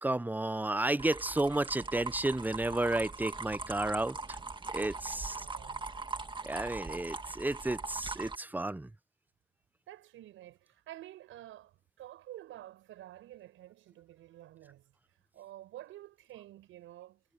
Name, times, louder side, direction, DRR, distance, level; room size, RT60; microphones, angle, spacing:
voice 1, 0.0-4.4 4.7-5.4 6.4-8.9, right 2 dB, 10° right, 0.6 m, -32 dB
sound 1, 1.0-8.3, right 3 dB, 25° right, 1.9 m, -41 dB
voice 2, 5.0-5.9 9.9-14.9 15.3-17.2, right 14 dB, 85° right, 6.6 m, -50 dB
cardioid pair, 90°, 20 cm